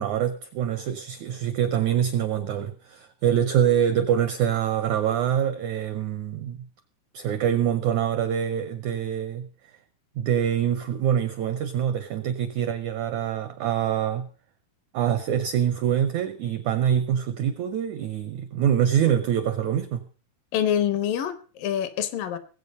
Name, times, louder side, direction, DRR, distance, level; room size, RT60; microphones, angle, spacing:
voice 1, 0.0-6.7 7.1-9.5 10.2-14.3 14.9-20.0, right 9 dB, 85° right, 11 dB, 1.6 m, -25 dB
voice 2, 20.5-22.4, left 9 dB, 70° left, 12 dB, 2.5 m, -26 dB
20.0 x 8.1 x 5.3 m, 0.39 s
omnidirectional pair, 4.5 m